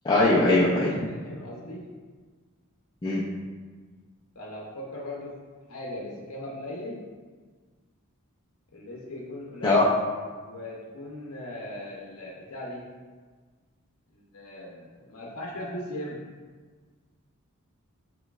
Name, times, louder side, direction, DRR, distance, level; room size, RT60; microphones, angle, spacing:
voice 1, 0.0-1.1 3.0-3.2 9.6-9.8, left 2 dB, 20° left, -7 dB, 0.4 m, -21 dB
voice 2, 1.1-1.8 4.3-5.3 5.7-7.0 8.7-9.9 10.4-12.8 14.1-16.2, left 1 dB, 80° left, -4 dB, 0.7 m, -38 dB
5.9 x 3.1 x 2.4 m, 1.5 s
head